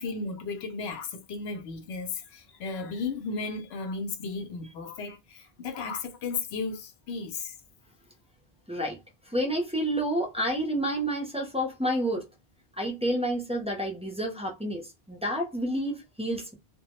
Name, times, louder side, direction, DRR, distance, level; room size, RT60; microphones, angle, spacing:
voice 1, 0.0-7.6, left 4 dB, 85° left, 0.8 m, -35 dB
voice 2, 9.3-12.3 12.8-16.5, right 1 dB, 10° right, 0.5 m, -29 dB
2.2 x 2.1 x 2.9 m
omnidirectional pair, 1.0 m